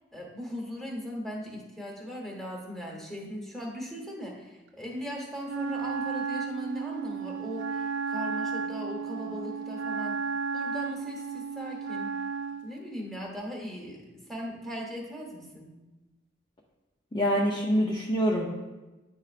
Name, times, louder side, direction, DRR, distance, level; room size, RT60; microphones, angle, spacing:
voice 1, 0.1-10.2 10.5-12.1 12.6-15.7, equal, ahead, -2 dB, 1.1 m, -38 dB
Wind instrument woodwind instrument, 5.4-12.7, right 5 dB, 75° right, 0.4 m, -33 dB
voice 2, 17.1-18.5, equal, 25° left, -4 dB, 0.6 m, -25 dB
9.6 x 4.5 x 2.5 m, 1.1 s
head